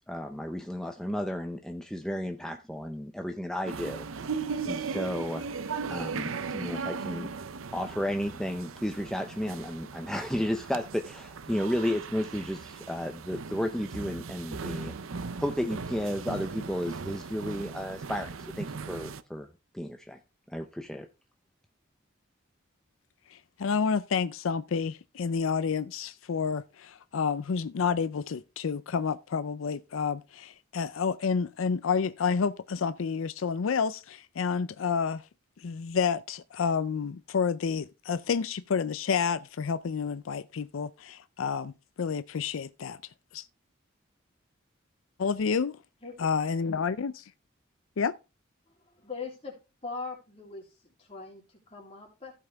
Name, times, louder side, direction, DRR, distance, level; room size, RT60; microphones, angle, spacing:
voice 1, 0.0-4.3 4.6-5.4 5.9-7.3 7.7-14.9 15.4-19.5 19.7-20.2 20.5-21.1, equal, 5° left, 0.6 m, -33 dB
sound 1, 3.7-19.2, right 5 dB, 90° right, 0.6 m, -38 dB
voice 2, 23.3-35.2 35.6-41.7 42.0-43.0 43.3-43.5 45.2-45.7 46.2-47.1 48.0-48.1, left 6 dB, 85° left, 0.5 m, -29 dB
voice 3, 49.0-49.6 49.8-52.3, left 4 dB, 30° left, 3.3 m, -41 dB
15.5 x 5.5 x 3.4 m
head